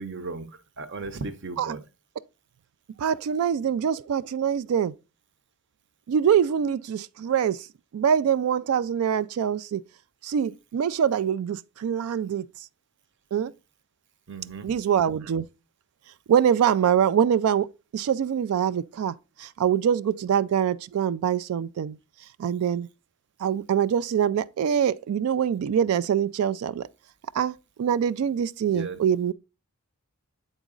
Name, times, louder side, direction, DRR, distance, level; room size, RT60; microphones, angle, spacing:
voice 1, 0.0-1.8 14.3-14.8 28.7-29.0, right 3 dB, 55° right, 0.8 m, -36 dB
voice 2, 3.0-4.9 6.1-7.7 7.9-9.8 10.2-12.5 13.3-13.5 14.6-15.5 16.3-22.0 22.4-22.9 23.4-26.9 27.3-29.3, right 8 dB, 80° right, 0.3 m, -24 dB
8.2 x 3.9 x 3.7 m
head